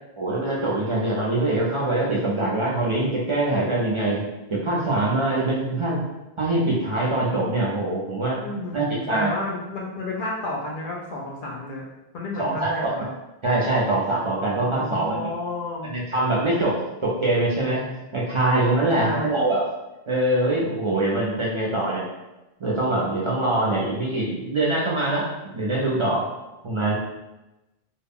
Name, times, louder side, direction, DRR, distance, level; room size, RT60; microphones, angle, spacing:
voice 1, 0.2-4.2 4.5-6.0 6.4-8.4 8.7-9.3 12.4-12.9 13.4-15.3 15.8-17.8 18.1-19.6 20.1-22.1 22.6-26.3 26.6-26.9, right 2 dB, 40° right, -5 dB, 0.4 m, -23 dB
voice 2, 8.4-11.8 12.1-13.1 14.5-15.9 18.8-19.4, left 2 dB, 60° left, -2 dB, 0.6 m, -31 dB
2.2 x 2.0 x 3.5 m, 1.0 s
omnidirectional pair, 1.0 m